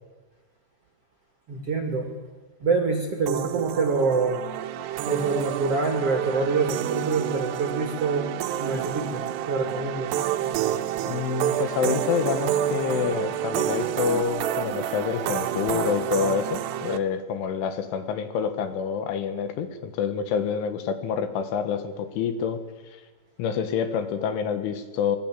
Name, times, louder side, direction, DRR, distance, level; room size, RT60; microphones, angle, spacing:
voice 1, 1.5-2.1 2.6-4.4 5.0-8.3 8.6-10.1, right 4 dB, 40° right, 3 dB, 2.3 m, -26 dB
sound 1, 3.3-17.0, right 11 dB, 75° right, 2.6 m, -29 dB
voice 2, 11.0-22.6 22.9-23.0 23.4-25.2, left 7 dB, 75° left, 9 dB, 3.9 m, -27 dB
26.0 x 19.0 x 7.6 m, 1.3 s
omnidirectional pair, 5.7 m